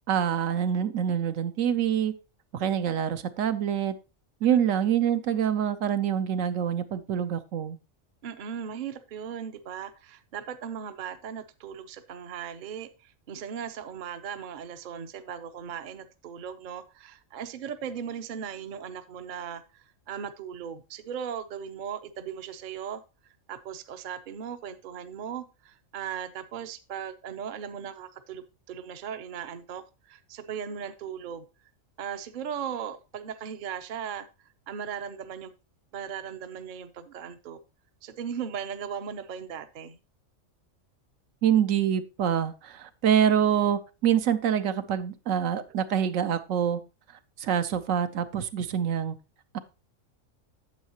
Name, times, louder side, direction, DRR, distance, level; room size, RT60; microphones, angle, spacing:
voice 1, 0.1-2.1 2.5-3.9 4.4-7.8 41.4-46.8 47.4-49.2 49.5-49.6, right 9 dB, 75° right, 10 dB, 1.0 m, -26 dB
voice 2, 8.2-31.5 32.0-34.3 34.7-35.5 35.9-37.6 38.0-40.0, right 8 dB, 50° right, 10 dB, 0.7 m, -38 dB
9.3 x 7.2 x 2.9 m, 0.29 s
omnidirectional pair, 1.4 m